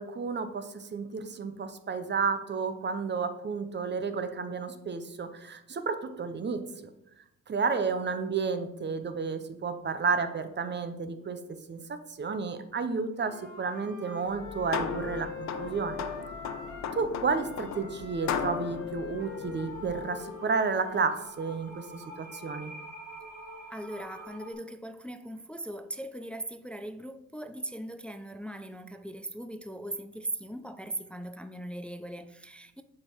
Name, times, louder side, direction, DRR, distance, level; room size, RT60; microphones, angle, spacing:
voice 1, 0.0-6.9 7.5-11.4 11.7-16.0 16.9-22.7, right 5 dB, 35° right, 0.8 m, -31 dB
Wind instrument woodwind instrument, 13.2-17.0 17.3-21.1, left 5 dB, 85° left, 1.8 m, -43 dB
sound 1, 14.3-20.1, left 7 dB, 65° left, 0.6 m, -37 dB
sound 2, 19.2-24.5, right 1 dB, 75° right, 2.2 m, -47 dB
voice 2, 23.7-32.8, right 1 dB, 5° left, 0.4 m, -39 dB
7.4 x 4.5 x 4.6 m
cardioid pair, 90°, 30 cm